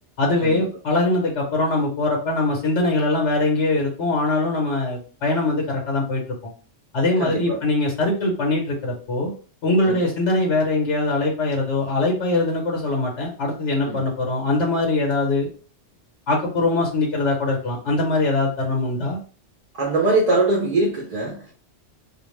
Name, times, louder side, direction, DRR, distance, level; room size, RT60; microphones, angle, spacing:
voice 1, 0.2-6.2 6.9-9.3 9.6-15.5 16.3-19.2, left 2 dB, 80° left, 1.2 m, -22 dB
voice 2, 7.2-7.6 9.9-10.1 13.9-14.0 19.7-21.5, right 2 dB, 40° right, 0.6 m, -22 dB
2.5 x 2.3 x 3.1 m
omnidirectional pair, 1.2 m